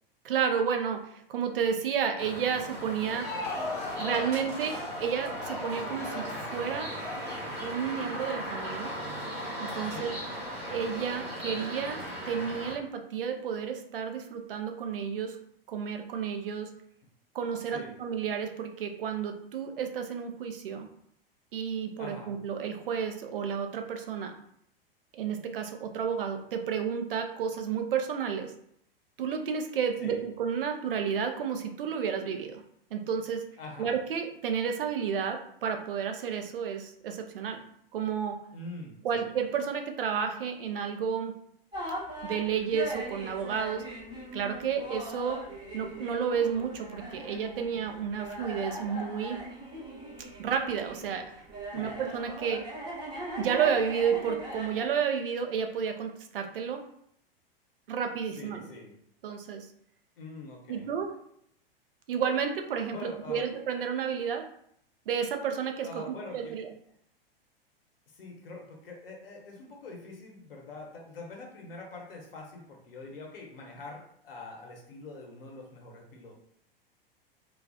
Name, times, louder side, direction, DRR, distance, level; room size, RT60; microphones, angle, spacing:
voice 1, 0.2-3.3 4.0-7.0 7.6-8.9 9.6-10.1 10.7-15.4 15.7-16.7 17.3-20.9 21.5-24.3 25.1-28.5 29.2-32.6 32.9-33.4 33.8-37.6 37.9-38.4 39.0-41.3 42.2-43.8 44.3-45.4 45.7-49.4 50.4-51.2 51.7-52.6 53.4-56.8 57.9-58.7 59.2-59.7 60.7-61.1 62.1-64.5 65.1-66.7, right 7 dB, 65° right, 5 dB, 0.5 m, -31 dB
Town Sounds Traffic Birds Wind, 2.2-12.7, equal, 85° right, 1.0 m, -38 dB
Crowd, 3.0-8.8, left 2 dB, 10° left, 0.4 m, -38 dB
voice 2, 9.8-10.2 17.7-18.0 22.0-22.4 30.0-30.2 33.6-33.9 38.5-39.3 51.7-52.0 58.3-59.0 60.2-60.9 62.9-63.5 65.8-66.6 68.1-76.4, left 3 dB, 70° left, 0 dB, 0.7 m, -44 dB
sound 1, 41.7-54.9, right 1 dB, 15° right, 0.8 m, -40 dB
2.3 x 2.3 x 2.3 m, 0.70 s
figure-of-eight pair, 95°, 30 cm